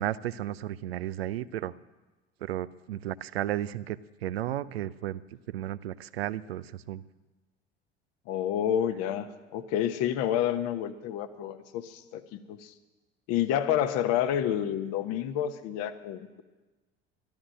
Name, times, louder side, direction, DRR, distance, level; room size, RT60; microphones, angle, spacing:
voice 1, 0.0-1.7 2.4-5.2 5.5-7.0, right 13 dB, 75° right, 17 dB, 0.6 m, -33 dB
voice 2, 8.3-9.3 9.5-12.7 13.3-16.4, left 10 dB, 55° left, 11 dB, 1.1 m, -29 dB
12.5 x 12.5 x 7.7 m, 1.2 s
figure-of-eight pair, 65°, 31 cm